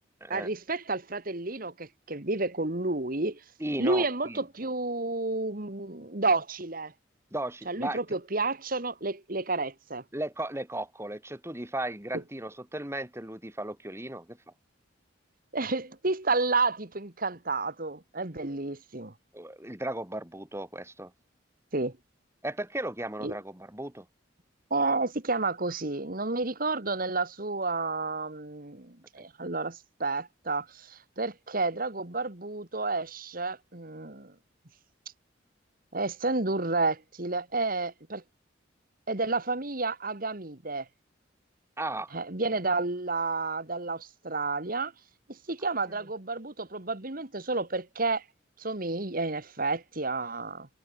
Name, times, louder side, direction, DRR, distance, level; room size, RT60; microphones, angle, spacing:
voice 1, 0.3-3.4 3.8-6.9 7.7-10.0 15.5-19.1 21.7-22.0 23.2-23.3 24.7-34.3 35.9-38.2 39.1-40.9 42.1-44.9 45.3-48.2 48.6-50.7, right 3 dB, 45° right, 2.0 m, -30 dB
voice 2, 3.6-4.4 7.3-8.0 10.1-14.4 19.3-21.1 22.4-24.0 29.2-29.3 41.8-42.1, right 1 dB, 15° right, 2.8 m, -35 dB
head